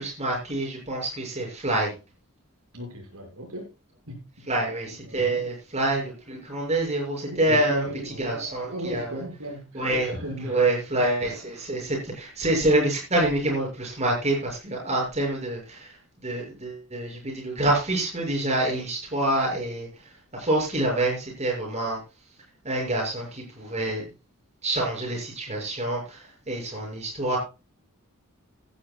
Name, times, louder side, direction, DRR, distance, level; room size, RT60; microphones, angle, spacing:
voice 1, 0.0-1.9 4.5-7.8 8.2-9.2 9.7-10.1 10.4-16.0 16.2-19.9 20.3-22.0 22.6-24.0 24.6-27.4, right 1 dB, 30° right, -1 dB, 6.7 m, -26 dB
voice 2, 2.7-3.7 4.1-4.5 5.0-5.5 7.3-10.8, equal, 75° right, 1 dB, 6.4 m, -36 dB
16.5 x 12.0 x 2.4 m, 0.29 s
head